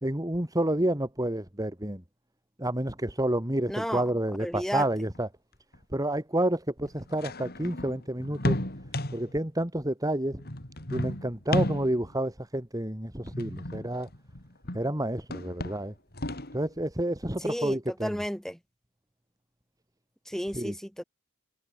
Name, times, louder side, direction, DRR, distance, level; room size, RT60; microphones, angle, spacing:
voice 1, 0.0-2.0 2.6-5.3 5.9-8.6 9.1-10.4 10.9-14.1 14.7-15.9 16.5-18.2 20.5-20.7, right 1 dB, 15° right, 2.3 m, -29 dB
voice 2, 3.7-4.1 4.4-4.9 17.4-18.6 20.3-21.0, equal, ahead, 3.4 m, -33 dB
sound 1, 5.1-5.2 5.7-5.8 6.9-9.4 10.4-12.2 13.2-14.9 15.2-16.6, left 1 dB, 45° left, 3.9 m, -34 dB
head